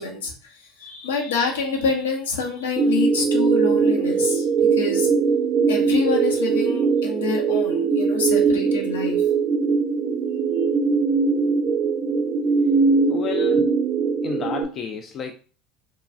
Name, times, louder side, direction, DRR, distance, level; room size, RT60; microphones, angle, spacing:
voice 1, 0.0-4.5 4.7-5.1 5.7-9.2, left 4 dB, 80° left, 1 dB, 0.7 m, -27 dB
sound 1, 2.8-14.6, right 5 dB, 45° right, 0.4 m, -21 dB
voice 2, 13.1-13.7 14.2-15.3, left 8 dB, 45° left, 5 dB, 0.3 m, -31 dB
3.0 x 2.3 x 2.5 m, 0.38 s
hypercardioid pair, 70°, 0 cm